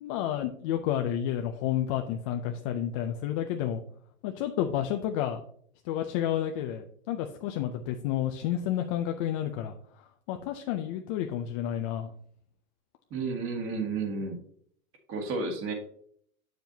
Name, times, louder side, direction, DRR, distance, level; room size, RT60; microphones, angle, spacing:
voice 1, 0.0-3.8 4.2-5.4 5.9-9.7 10.3-12.1, left 10 dB, 30° left, 4 dB, 0.3 m, -30 dB
voice 2, 13.1-14.4 15.1-15.7, right 4 dB, 30° right, 4 dB, 1.8 m, -32 dB
7.4 x 7.1 x 2.7 m, 0.62 s
hypercardioid pair, 130°, 41 cm